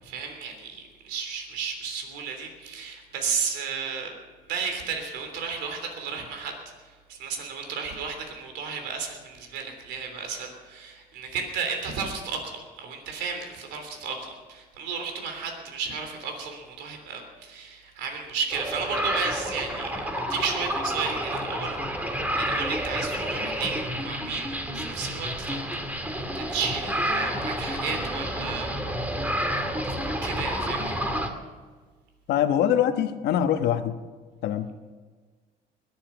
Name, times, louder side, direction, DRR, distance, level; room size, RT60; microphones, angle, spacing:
voice 1, 0.0-4.1 4.4-25.6 25.9-28.7 30.2-31.0, right 5 dB, 90° right, 5 dB, 3.3 m, -33 dB
sound 1, 18.5-31.3, equal, 10° right, 2.1 m, -29 dB
voice 2, 32.3-34.0 34.4-34.7, left 10 dB, 75° left, 8 dB, 1.2 m, -23 dB
21.5 x 10.0 x 6.0 m, 1.4 s
cardioid pair, 110°, 17 cm